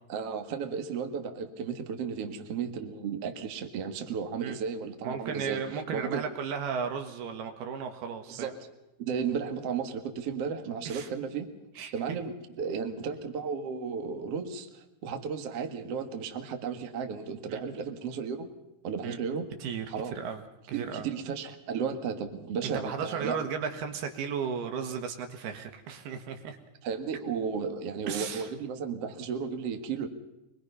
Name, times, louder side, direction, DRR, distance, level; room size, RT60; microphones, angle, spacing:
voice 1, 0.1-5.6 5.9-6.2 8.3-8.7 9.0-11.5 11.9-18.5 18.8-19.5 19.9-20.2 20.7-23.4 26.8-30.1, right 6 dB, 50° right, 6 dB, 2.2 m, -34 dB
voice 2, 5.0-8.5 10.9-11.1 11.8-12.2 17.5-17.6 19.0-19.2 19.6-21.1 22.6-26.6 28.1-28.5, right 6 dB, 75° right, 6 dB, 3.5 m, -35 dB
24.5 x 22.0 x 5.6 m, 0.96 s
omnidirectional pair, 4.7 m